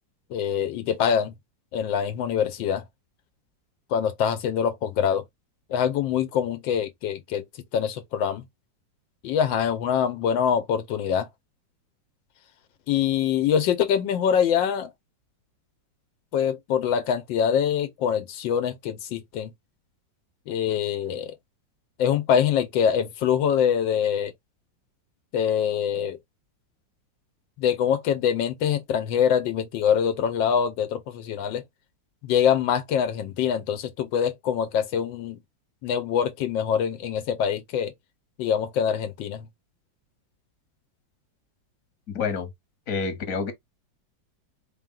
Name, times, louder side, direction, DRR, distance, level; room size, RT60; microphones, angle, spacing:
voice 1, 0.3-1.3 1.7-2.8 3.9-5.2 5.7-7.4 7.7-8.4 9.2-11.3 12.9-14.9 16.3-19.5 20.5-21.3 22.0-24.3 25.3-26.2 27.6-31.6 32.2-35.4 35.8-37.9 38.4-39.4, left 8 dB, 85° left, 1.4 m, -24 dB
voice 2, 42.1-42.5 42.9-43.5, left 5 dB, 50° left, 1.4 m, -28 dB
4.4 x 2.2 x 3.7 m
omnidirectional pair, 2.0 m